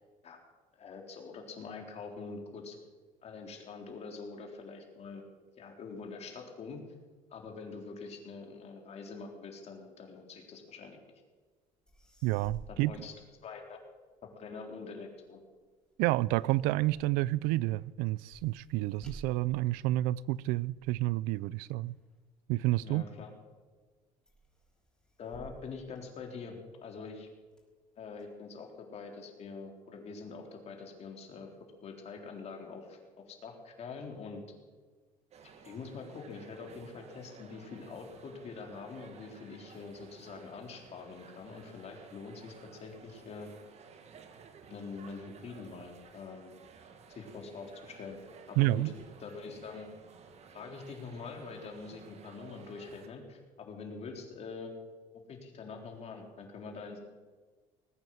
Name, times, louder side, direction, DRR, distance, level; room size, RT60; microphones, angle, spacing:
voice 1, 0.8-2.8 3.2-5.2 5.6-6.8 7.3-11.0 12.7-13.1 13.4-13.8 14.2-15.4 22.8-23.3 25.2-27.3 28.0-31.5 31.8-33.0 33.3-34.4 35.4-42.5 42.8-43.5 44.7-46.5 47.1-48.2 48.5-48.9 49.2-49.9 50.5-54.7 55.3-57.0, left 4 dB, 45° left, 3.9 m, -45 dB
sound 1, 11.6-11.7 11.9-14.0 14.4-23.1 23.6-24.0 24.3-26.7 27.2-28.2, right 1 dB, 5° left, 5.1 m, -55 dB
voice 2, 12.2-12.9 16.0-21.9 22.5-23.0 48.6-48.9, right 17 dB, 80° right, 0.4 m, -29 dB
sound 2, 35.3-53.1, right 6 dB, 45° right, 1.8 m, -55 dB
20.0 x 9.2 x 7.9 m
cardioid pair, 110°, 15 cm